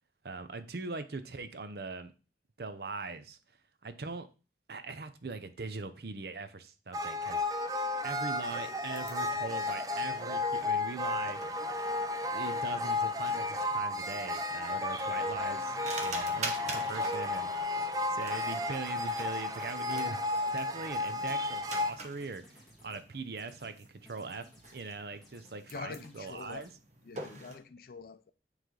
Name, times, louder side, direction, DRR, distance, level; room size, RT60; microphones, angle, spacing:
voice 1, 0.2-2.1 2.6-3.4 3.8-4.3 4.7-7.6 8.0-11.4 12.3-17.7 18.1-20.2 20.5-24.5 24.7-26.7, right 4 dB, 60° right, 0.6 m, -41 dB
sound 1, 6.9-21.9, left 2 dB, 20° right, 0.4 m, -33 dB
sound 2, 8.0-27.6, right 3 dB, 40° right, 1.1 m, -47 dB
voice 2, 14.9-15.5 25.7-26.7 27.0-28.3, left 4 dB, 55° left, 0.4 m, -46 dB
sound 3, 15.2-17.5 17.8-18.2 18.5-19.3 19.7-20.0 20.4-21.2 21.5-21.9 22.2-23.0 23.4-23.7 24.1-24.9 25.2-25.6 25.9-26.7, left 1 dB, ahead, 1.6 m, -57 dB
9.2 x 3.3 x 3.8 m
head